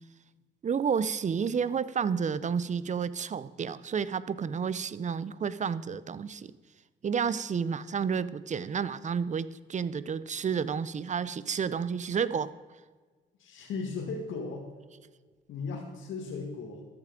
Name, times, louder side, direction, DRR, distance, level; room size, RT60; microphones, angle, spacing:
voice 1, 0.6-6.5 7.0-12.5, right 6 dB, 35° right, 17 dB, 0.6 m, -30 dB
voice 2, 13.4-14.7 15.5-16.8, left 4 dB, 80° left, -1 dB, 2.0 m, -36 dB
13.5 x 9.6 x 5.1 m, 1.4 s
cardioid pair, 90°, 20 cm